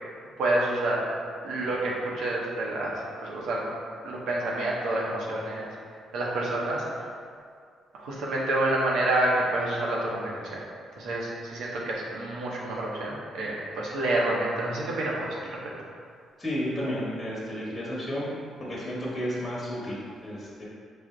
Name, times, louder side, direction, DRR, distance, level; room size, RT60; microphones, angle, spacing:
voice 1, 0.4-1.0 1.4-3.6 4.0-5.7 6.1-7.0 7.9-10.6 11.0-15.3, right 1 dB, 80° right, -3 dB, 0.8 m, -28 dB
voice 2, 16.4-18.3 18.6-20.6, equal, 20° left, -6 dB, 1.1 m, -32 dB
4.9 x 2.1 x 3.7 m, 2.2 s
cardioid pair, 90°, 0 cm